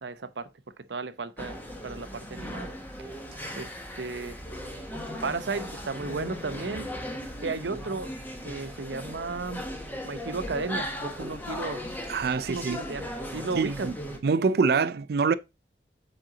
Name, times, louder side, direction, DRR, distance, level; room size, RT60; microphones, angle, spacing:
voice 1, 0.0-0.5 0.9-2.7 3.6-3.7 4.0-4.4 5.2-6.9 7.4-8.1 8.4-9.6 10.0-11.8 12.5-13.9, right 4 dB, 80° right, 0.7 m, -34 dB
sound 1, 1.4-14.2, left 1 dB, 10° left, 1.2 m, -37 dB
voice 2, 12.1-12.8 13.6-13.9 14.2-15.3, right 5 dB, 60° right, 0.4 m, -25 dB
7.6 x 4.3 x 3.8 m
head